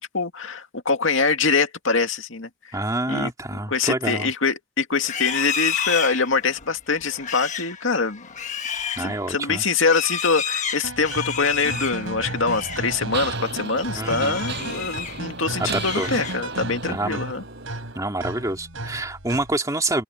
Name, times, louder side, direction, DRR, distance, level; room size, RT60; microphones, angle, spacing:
voice 1, 0.0-2.5 3.1-3.3 3.7-8.3 9.0-17.4, left 4 dB, 75° left, 2.3 m, -24 dB
voice 2, 2.7-4.3 9.0-9.6 14.0-14.4 15.6-16.2 16.9-17.2 18.0-20.0, right 2 dB, 15° right, 2.4 m, -27 dB
Livestock farm animals working animals, 5.0-12.9 13.3-13.6 14.0-15.2 15.6-16.6, left 7 dB, 40° left, 1.3 m, -31 dB
sound 1, 10.8-19.6, right 2 dB, 85° right, 7.1 m, -34 dB
Mechanisms, 11.6-11.7 12.3-18.1, right 5 dB, 60° right, 7.9 m, -36 dB
open air
head